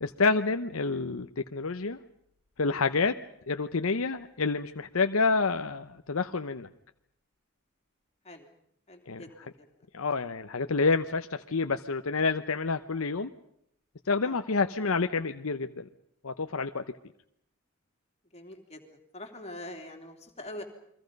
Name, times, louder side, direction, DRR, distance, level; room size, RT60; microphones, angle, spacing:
voice 1, 0.0-2.0 2.6-3.2 3.5-6.7 9.1-9.2 9.9-13.3 14.1-15.9 16.2-16.8, left 4 dB, 70° left, 8 dB, 0.8 m, -28 dB
voice 2, 8.9-9.7 14.2-14.4 18.3-18.8 19.1-20.6, left 1 dB, 30° left, 4 dB, 3.2 m, -44 dB
29.5 x 23.5 x 5.3 m, 0.72 s
head